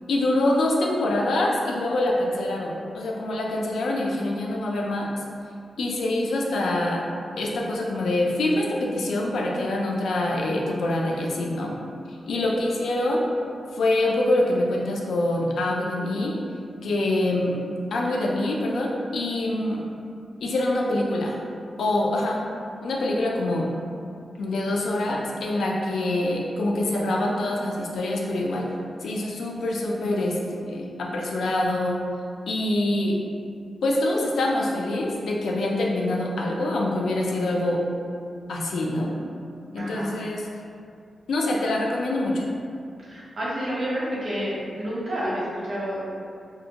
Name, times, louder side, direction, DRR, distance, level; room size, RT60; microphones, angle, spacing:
voice 1, 0.1-5.1 5.8-7.1 7.4-11.8 12.3-13.2 13.7-16.3 16.8-17.6 17.9-19.9 20.4-21.4 21.8-22.4 22.8-23.7 24.4-28.7 29.0-32.0 32.5-33.2 33.8-37.8 38.5-39.1 39.7-40.5 41.3-42.5, left 1 dB, 85° left, -1 dB, 0.3 m, -25 dB
voice 2, 39.8-40.1 43.0-46.0, equal, 65° right, -8 dB, 0.8 m, -29 dB
2.6 x 2.1 x 2.7 m, 2.4 s
wide cardioid pair, 130°, 0 cm